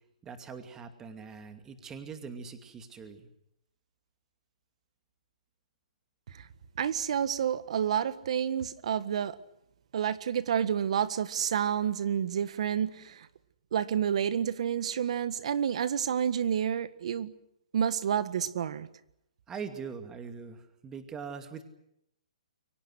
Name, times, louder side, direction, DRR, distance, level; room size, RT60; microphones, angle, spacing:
voice 1, 0.2-3.3 19.5-21.6, right 6 dB, 15° right, 8 dB, 2.4 m, -42 dB
voice 2, 6.8-9.4 9.9-13.3 13.7-17.3 17.7-18.9, right 8 dB, 55° right, 15 dB, 1.6 m, -29 dB
29.5 x 24.0 x 6.4 m, 0.77 s
hypercardioid pair, 155°, 4 cm